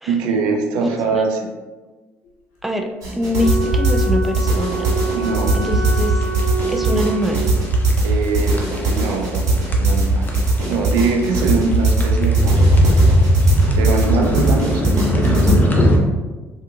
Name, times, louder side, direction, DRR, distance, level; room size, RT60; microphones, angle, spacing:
voice 1, 0.1-1.4 5.1-5.5 8.0-10.2 10.7-13.0 13.8-15.0, right 4 dB, 75° right, 2 dB, 0.5 m, -22 dB
voice 2, 0.8-1.3 2.6-4.9 5.5-6.3 6.7-7.5, equal, ahead, 4 dB, 0.4 m, -24 dB
sound 1, 3.0-15.5, right 2 dB, 50° right, 1.3 m, -19 dB
Wind instrument woodwind instrument, 3.3-7.7, right 3 dB, 85° left, 0.7 m, -26 dB
sound 2, 5.7-16.0, equal, 25° left, 0.7 m, -18 dB
3.5 x 2.8 x 2.3 m, 1.2 s
hypercardioid pair, 60°, 8 cm